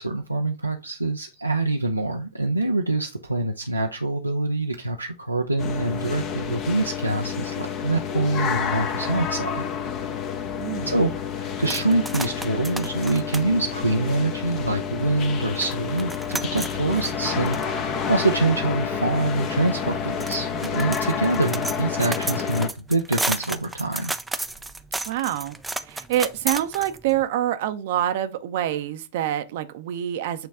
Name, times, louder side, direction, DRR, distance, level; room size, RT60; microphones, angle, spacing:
voice 1, 0.0-9.6 10.8-24.1, right 2 dB, 90° right, 0.7 m, -25 dB
sound 1, 5.6-22.7, left 7 dB, 35° left, 1.1 m, -29 dB
voice 2, 10.6-11.0 25.1-25.5 25.9-30.5, right 12 dB, 55° right, 0.8 m, -26 dB
sound 2, 11.6-14.8 15.2-15.3 15.6-27.2, right 2 dB, 5° right, 0.6 m, -33 dB
8.8 x 3.2 x 3.6 m
figure-of-eight pair, 90°, 0 cm